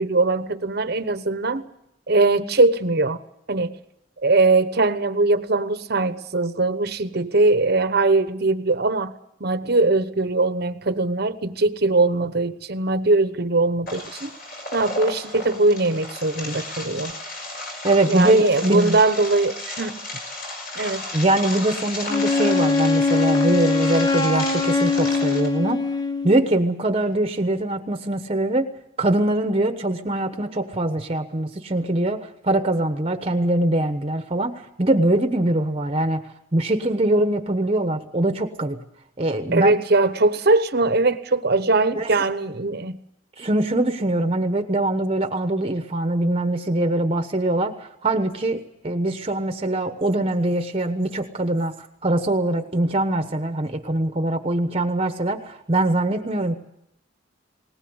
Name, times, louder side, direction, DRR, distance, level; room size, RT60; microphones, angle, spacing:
voice 1, 0.0-1.7 2.1-3.2 3.5-3.7 4.2-9.1 9.4-14.3 14.7-17.1 18.1-20.0 20.7-21.0 39.5-43.0, right 3 dB, 55° right, 11 dB, 1.1 m, -21 dB
sound 1, 13.9-25.5, left 2 dB, 50° left, 5.8 m, -34 dB
voice 2, 17.8-19.0 21.1-25.9 26.2-28.7 29.0-36.2 36.5-38.8 39.2-39.7 41.9-42.2 43.4-56.6, right 1 dB, 30° right, 7 dB, 1.1 m, -22 dB
Wind instrument woodwind instrument, 22.1-26.5, left 3 dB, 20° left, 0.9 m, -22 dB
19.5 x 19.5 x 8.0 m, 0.80 s
head